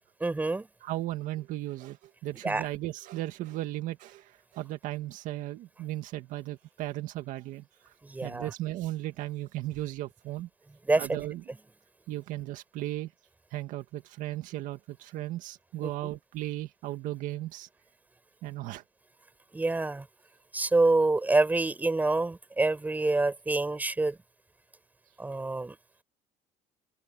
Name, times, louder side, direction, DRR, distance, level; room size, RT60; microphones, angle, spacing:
voice 1, 0.2-0.7 2.4-2.7 8.0-8.5 10.8-11.2 15.8-15.9 19.5-20.1 20.5-24.2 25.2-25.8, right 2 dB, 10° right, 6.3 m, -26 dB
voice 2, 0.8-7.9 8.2-10.5 11.0-11.4 12.1-13.1 13.5-17.7 18.4-18.8, right 15 dB, 70° right, 2.0 m, -36 dB
open air
cardioid pair, 145°, 14 cm